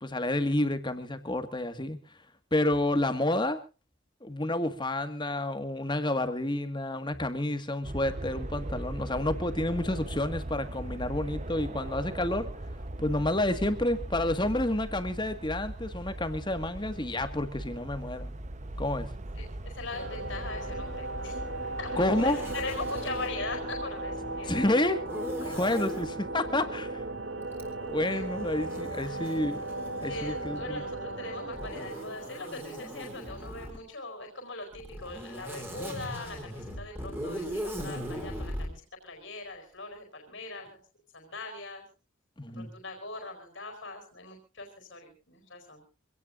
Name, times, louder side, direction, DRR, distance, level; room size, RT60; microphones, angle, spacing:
voice 1, 0.0-2.0 2.5-3.6 4.2-12.5 13.0-18.3 18.8-19.1 22.0-22.4 24.4-25.0 25.4-27.0 27.9-29.6 30.0-30.8 42.4-42.7, left 1 dB, 20° left, 9 dB, 1.7 m, -29 dB
sound 1, 7.8-24.7, right 1 dB, 35° right, 0.9 m, -40 dB
voice 2, 19.4-21.4 21.8-24.7 28.0-28.2 29.0-29.4 30.1-40.8 41.1-41.8 42.5-45.8, left 3 dB, 60° left, 4 dB, 4.4 m, -41 dB
sound 2, 19.9-33.5, right 2 dB, 60° right, 2.6 m, -36 dB
Zipper (clothing), 22.0-23.4 25.0-26.1 27.5-30.7 31.5-33.8 34.7-38.7, equal, 10° right, 3.7 m, -40 dB
25.5 x 17.5 x 2.5 m, 0.32 s
head